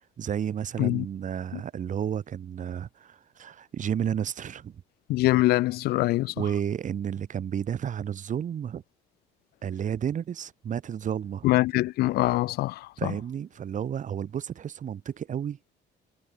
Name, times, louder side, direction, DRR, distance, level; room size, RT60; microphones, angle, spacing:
voice 1, 0.2-4.8 6.4-8.8 9.6-11.5 13.0-15.6, right 9 dB, 50° right, 4.8 m, -32 dB
voice 2, 5.1-6.3 11.4-13.1, left 18 dB, 70° left, 0.4 m, -24 dB
cardioid pair, 110°, 17 cm